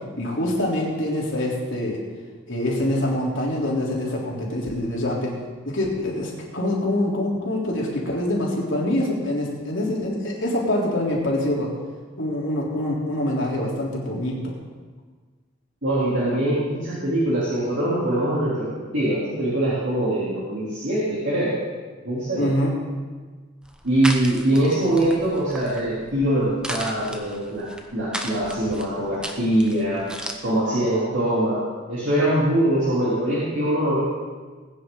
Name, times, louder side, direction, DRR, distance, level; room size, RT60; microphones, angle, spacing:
voice 1, 0.2-2.0 2.5-5.3 5.6-11.7 12.2-14.6 22.4-22.7, left 1 dB, 70° left, -3 dB, 3.5 m, -25 dB
voice 2, 15.8-21.6 22.0-22.5 23.8-27.7 27.9-30.1 30.4-31.6 31.9-34.0, right 1 dB, 65° right, -9 dB, 3.3 m, -23 dB
sound 1, 23.6-30.3, equal, 5° right, 0.9 m, -36 dB
21.0 x 9.7 x 3.9 m, 1.4 s
head